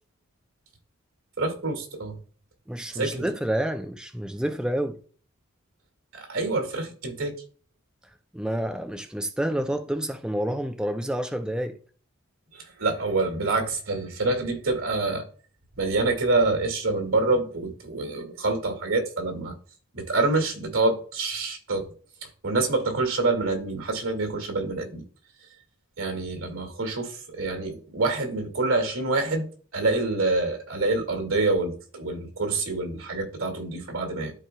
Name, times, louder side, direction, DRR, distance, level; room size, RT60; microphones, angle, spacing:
voice 1, 1.4-2.2 2.9-3.2 6.1-7.3 12.5-15.2 15.8-19.5 19.9-21.8 22.4-25.0 26.0-29.5 29.7-34.3, right 3 dB, 75° right, 2.1 m, -26 dB
voice 2, 2.7-5.0 8.3-11.8, right 1 dB, 5° right, 0.4 m, -29 dB
13.0 x 4.5 x 2.3 m
head